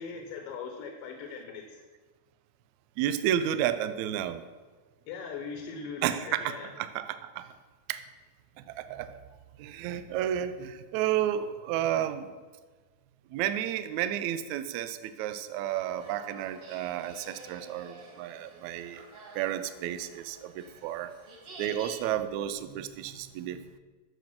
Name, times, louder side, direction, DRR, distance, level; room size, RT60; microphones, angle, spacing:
voice 1, 0.0-1.8 5.1-6.7 7.4-7.5, left 5 dB, 85° left, 4 dB, 2.6 m, -40 dB
voice 2, 3.0-4.4 6.0-7.5 7.9-8.0 8.7-9.2 9.6-12.3 13.3-19.0 19.4-21.1 21.6-23.6, right 11 dB, 75° right, 11 dB, 1.8 m, -31 dB
sound 1, 15.7-22.0, right 2 dB, 50° right, 2.6 m, -49 dB
10.5 x 7.2 x 6.0 m, 1.4 s
omnidirectional pair, 3.8 m